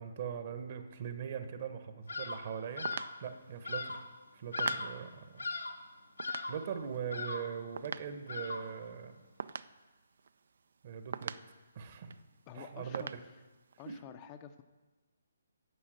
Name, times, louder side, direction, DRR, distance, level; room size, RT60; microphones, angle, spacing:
voice 1, 0.0-2.9 3.2-4.1 4.3-5.5 6.4-9.1 10.8-11.3 11.7-12.1 12.5-13.0 13.9-14.0, right 7 dB, 45° right, 8 dB, 1.1 m, -41 dB
Bird vocalization bird call bird song, 2.1-2.5 2.8-3.2 3.6-4.1 4.5-5.1 5.4-5.9 6.2-6.7 7.1-7.6 8.3-8.8, left 3 dB, 85° left, 1.1 m, -39 dB
sound 1, 2.7-10.8 11.1-12.3 12.6-12.7 12.9-13.9, right 5 dB, 60° right, 0.4 m, -44 dB
voice 2, 12.5-13.3 13.8-14.6, left 9 dB, 25° left, 8 dB, 0.6 m, -50 dB
9.8 x 6.3 x 7.8 m, 1.2 s
figure-of-eight pair, 145°, 0 cm